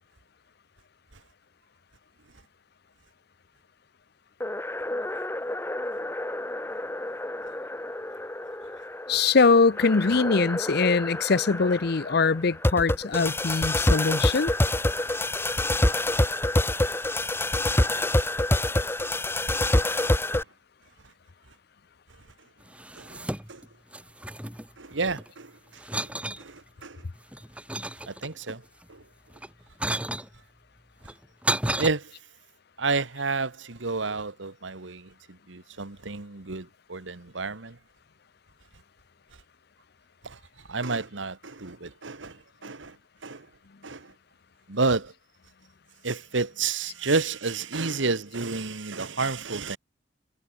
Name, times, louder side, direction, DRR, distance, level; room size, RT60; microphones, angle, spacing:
sound 1, 4.4-20.4, left 1 dB, 15° left, 1.1 m, -27 dB
voice 1, 9.1-14.5, left 4 dB, 60° left, 0.7 m, -22 dB
sound 2, 22.7-23.7 23.9-25.3 25.8-26.4 27.0-28.5 29.3-30.3 31.0-31.9, right 1 dB, 5° right, 4.2 m, -32 dB
voice 2, 24.8-25.5 25.9-26.1 26.4-27.0 28.1-28.6 28.9-29.0 31.8-32.1 32.8-37.8 40.2-40.4 40.7-43.0 43.2-43.5 43.8-44.1 44.7-45.1 46.0-49.8, right 4 dB, 90° right, 1.5 m, -30 dB
head